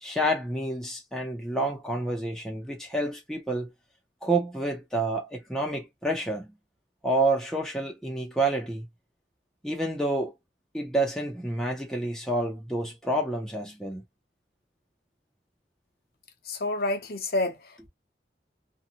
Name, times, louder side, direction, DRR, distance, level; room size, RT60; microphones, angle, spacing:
voice 1, 0.0-3.7 4.2-6.6 7.0-8.9 9.6-10.3 10.7-14.0, right 1 dB, 5° left, 0.7 m, -29 dB
voice 2, 16.4-17.9, left 2 dB, 55° left, 0.8 m, -29 dB
2.6 x 2.3 x 2.7 m
head